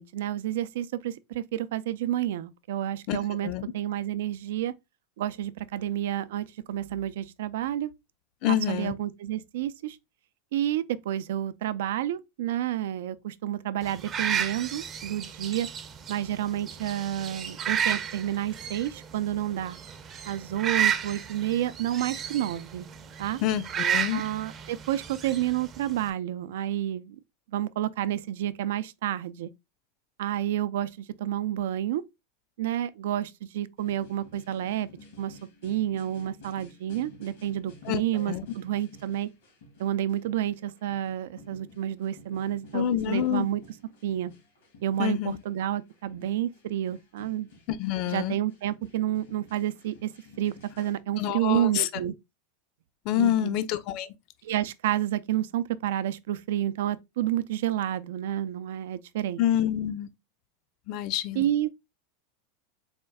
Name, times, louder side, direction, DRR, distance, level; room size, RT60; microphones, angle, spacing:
voice 1, 0.0-4.7 5.2-7.9 8.5-10.0 10.5-15.7 16.1-19.8 20.2-22.9 23.2-23.4 24.1-27.2 27.5-29.5 30.2-32.0 32.6-34.9 35.2-39.3 39.8-43.6 44.0-44.3 44.8-47.5 48.1-50.1 50.4-52.1 53.2-53.6 54.4-59.4 61.4-61.7, right 12 dB, 80° right, 0.3 m, -30 dB
voice 2, 8.4-8.9 23.4-24.2 37.9-38.4 42.7-43.5 45.0-45.4 47.7-48.4 51.2-51.9 53.1-54.1 59.4-60.1 60.9-61.5, left 11 dB, 50° left, 0.4 m, -27 dB
sound 1, 13.8-26.1, right 8 dB, 30° right, 0.5 m, -33 dB
sound 2, 33.8-51.0, left 2 dB, 80° left, 1.7 m, -52 dB
4.2 x 2.2 x 3.4 m
supercardioid pair, 120°, 0 cm